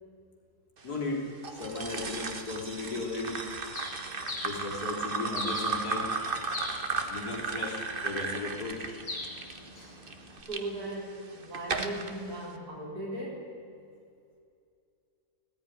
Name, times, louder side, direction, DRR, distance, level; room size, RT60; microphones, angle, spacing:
voice 1, 0.8-3.6 4.4-6.1 7.1-8.9 9.8-10.0, left 3 dB, 85° left, -1 dB, 4.1 m, -36 dB
sound 1, 1.4-10.6 11.2-12.1, right 4 dB, 40° right, 1.4 m, -35 dB
Bird, 3.7-10.4, left 2 dB, 70° left, 3.5 m, -42 dB
voice 2, 10.3-13.5, right 1 dB, 90° right, -4 dB, 4.6 m, -38 dB
18.0 x 14.5 x 10.0 m, 2.4 s
omnidirectional pair, 1.6 m